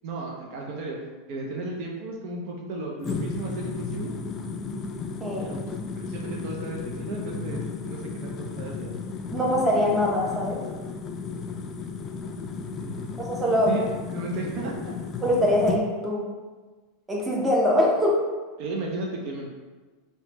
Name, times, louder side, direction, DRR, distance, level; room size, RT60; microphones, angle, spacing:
voice 1, 0.0-1.0 1.3-4.1 5.4-5.7 6.0-8.9 12.6-13.3 13.7-13.8 14.1-15.0 18.6-19.5, right 2 dB, 60° right, -1 dB, 0.5 m, -34 dB
sound 1, 3.0-15.8, left 5 dB, 35° left, 0.3 m, -34 dB
voice 2, 5.2-5.5 9.3-10.6 13.2-13.7 15.2-16.2 17.1-18.2, left 1 dB, 15° right, -3 dB, 0.7 m, -23 dB
3.1 x 2.1 x 2.9 m, 1.3 s
hypercardioid pair, 115°, 0 cm